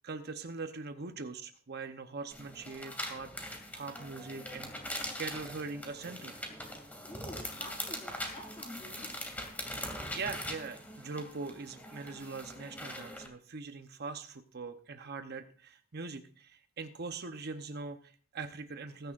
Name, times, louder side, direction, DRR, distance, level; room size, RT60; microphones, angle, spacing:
voice 1, 0.0-3.3 3.7-4.7 5.2-6.4 9.6-19.1, right 4 dB, 50° right, 8 dB, 0.8 m, -42 dB
sound 1, 2.3-13.3, left 1 dB, 10° left, 2.4 m, -42 dB
voice 2, 7.0-9.2, left 1 dB, 25° left, -1 dB, 5.3 m, -48 dB
20.5 x 10.5 x 2.5 m, 0.42 s
head